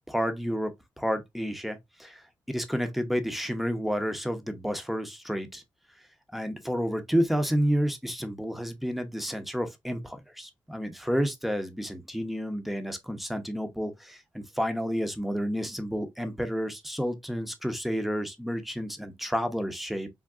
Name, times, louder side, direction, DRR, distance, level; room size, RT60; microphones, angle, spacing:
voice 1, 0.1-5.6 6.3-20.1, equal, ahead, 0.7 m, -30 dB
3.6 x 2.2 x 2.3 m
cardioid pair, 70°, 8 cm